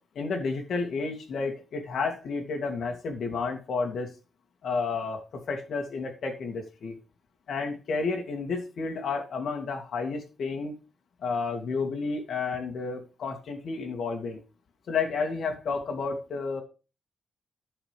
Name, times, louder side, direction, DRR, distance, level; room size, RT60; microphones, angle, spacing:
voice 1, 0.2-4.1 4.6-7.0 7.5-10.7 11.2-14.4 14.9-16.6, left 4 dB, 65° left, 2 dB, 2.2 m, -31 dB
11.5 x 5.2 x 5.2 m, 0.32 s
wide cardioid pair, 130°, 0 cm